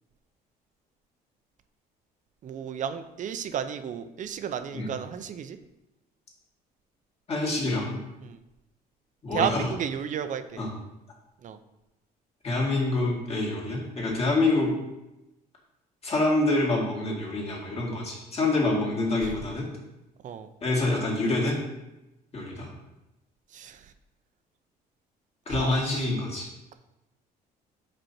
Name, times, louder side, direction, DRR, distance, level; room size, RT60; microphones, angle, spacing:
voice 1, 2.4-5.6 8.2-8.4 9.3-10.6 11.4-11.6 19.2-19.3 20.2-20.5 23.5-23.8 25.5-26.1, right 8 dB, 50° right, 10 dB, 0.5 m, -33 dB
voice 2, 7.3-8.0 9.2-9.7 10.6-10.7 12.4-14.7 16.0-19.7 20.6-21.6 22.3-22.7 25.5-26.5, left 2 dB, 35° left, -3 dB, 2.2 m, -26 dB
5.3 x 4.3 x 5.8 m, 0.95 s
cardioid pair, 110°, 17 cm